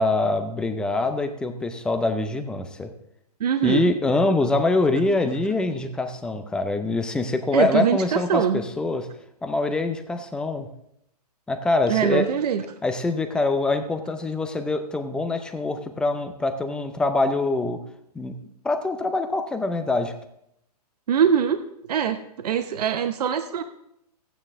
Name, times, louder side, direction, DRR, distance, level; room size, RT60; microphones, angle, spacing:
voice 1, 0.0-2.9 3.6-9.1 9.4-10.7 11.5-12.3 12.8-17.8 18.1-18.4 18.6-20.1, left 2 dB, 5° left, 8 dB, 0.5 m, -24 dB
voice 2, 3.4-3.9 7.5-8.6 11.9-12.6 21.1-21.6 21.9-23.6, right 8 dB, 70° right, 8 dB, 0.8 m, -22 dB
14.0 x 9.1 x 3.6 m, 0.76 s
hypercardioid pair, 155°, 21 cm